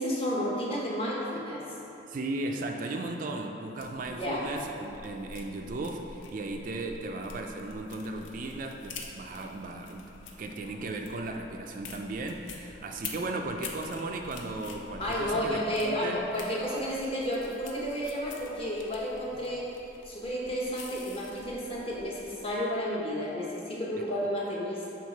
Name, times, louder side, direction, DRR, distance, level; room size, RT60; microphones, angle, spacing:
voice 1, 0.0-1.6 4.1-4.4 15.0-19.7 20.0-24.9, equal, 30° left, -4 dB, 0.9 m, -31 dB
voice 2, 2.1-10.1 10.4-16.2 24.0-24.1, right 2 dB, 45° right, 3 dB, 0.3 m, -36 dB
sound 1, 3.8-22.5, left 4 dB, 90° left, 0.6 m, -47 dB
6.4 x 3.9 x 4.1 m, 2.9 s
head